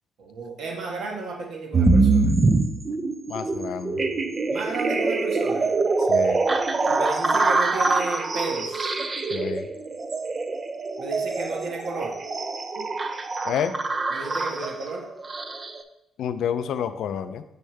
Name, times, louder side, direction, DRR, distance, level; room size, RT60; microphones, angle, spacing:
voice 1, 0.2-2.4 4.5-5.7 6.9-8.9 11.0-12.1 14.1-15.0, right 3 dB, 80° right, 0 dB, 1.4 m, -33 dB
sound 1, 1.7-15.8, right 3 dB, 35° right, 0.5 m, -24 dB
voice 2, 3.3-4.0 6.1-6.4 9.3-9.7 12.8-12.9 13.4-13.7 16.2-17.4, left 8 dB, 75° left, 11 dB, 0.4 m, -29 dB
6.6 x 5.4 x 3.3 m, 0.85 s
cardioid pair, 90°, 0 cm